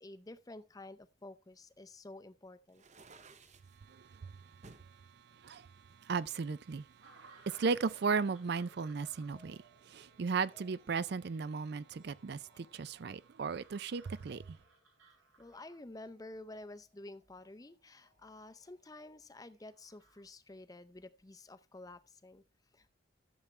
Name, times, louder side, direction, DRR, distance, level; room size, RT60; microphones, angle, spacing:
voice 1, 0.0-2.8 15.4-22.4 22.7-22.9, left 2 dB, 20° left, 0.5 m, -51 dB
sound 1, 2.7-3.8 4.6-4.9 5.5-6.6, right 3 dB, 35° right, 0.8 m, -57 dB
voice 2, 6.1-6.9 7.2-9.6 9.9-14.4, right 5 dB, 55° right, 0.4 m, -35 dB
sound 2, 7.0-20.2, right 3 dB, 90° right, 4.8 m, -63 dB
13.5 x 7.1 x 3.2 m
head